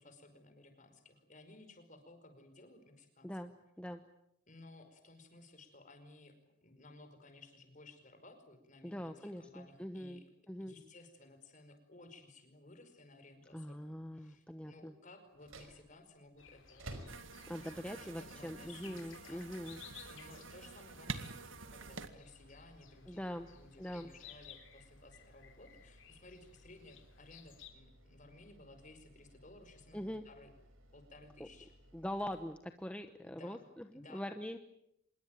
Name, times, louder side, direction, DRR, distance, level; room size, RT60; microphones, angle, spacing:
voice 1, 0.0-3.3 4.5-6.3 6.6-10.3 10.6-19.7 20.0-30.5 30.9-31.7 33.2-33.6 33.9-34.3, left 2 dB, 40° left, 8 dB, 5.1 m, -58 dB
voice 2, 8.8-10.2 10.5-10.7 13.5-14.9 17.5-19.8 23.1-23.5 23.8-24.1 29.9-30.2 31.4-31.5 31.9-34.6, equal, 5° left, 7 dB, 1.0 m, -43 dB
sound 1, 15.3-33.1, right 1 dB, 80° right, 5.3 m, -59 dB
sound 2, 16.4-27.7, left 8 dB, 65° left, 3.4 m, -58 dB
sound 3, 17.1-22.1, right 4 dB, 65° right, 2.1 m, -48 dB
26.0 x 22.0 x 9.2 m, 0.79 s
head